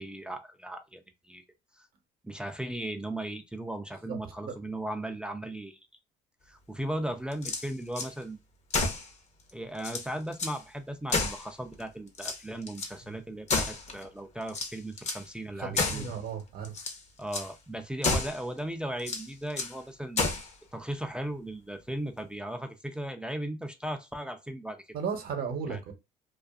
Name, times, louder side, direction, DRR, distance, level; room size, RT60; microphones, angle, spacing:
voice 1, 0.0-1.4 1.8-1.9 2.2-5.8 6.5-8.4 9.5-16.1 17.2-20.2 20.7-24.9 25.7-25.8, right 1 dB, 5° right, 0.3 m, -37 dB
sound 1, 7.3-8.1 8.7-9.1 9.5-9.6 9.8-10.6 11.1-11.8 12.1-12.9 13.5-14.1 14.5-15.3 15.8-16.1 16.6-17.0 17.3-17.5 18.0-18.4 19.0-19.8 20.2-20.5, left 3 dB, 40° left, 0.7 m, -31 dB
voice 2, 15.6-16.7 24.9-25.9, right 6 dB, 60° right, 0.8 m, -35 dB
2.5 x 2.4 x 2.3 m
cardioid pair, 110°, 17 cm